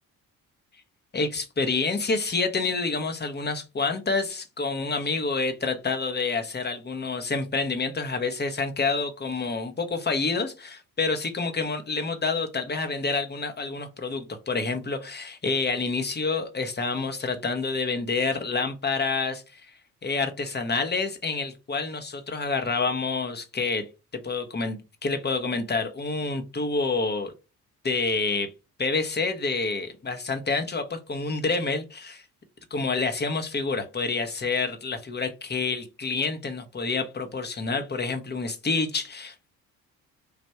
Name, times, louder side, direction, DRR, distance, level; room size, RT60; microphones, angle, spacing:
voice 1, 1.1-19.7 20.0-23.8 24.1-27.3 27.8-28.5 28.8-32.2 32.7-39.5, left 4 dB, 25° left, 7 dB, 0.9 m, -28 dB
3.5 x 2.5 x 4.3 m, 0.29 s
hypercardioid pair, 45°, 43 cm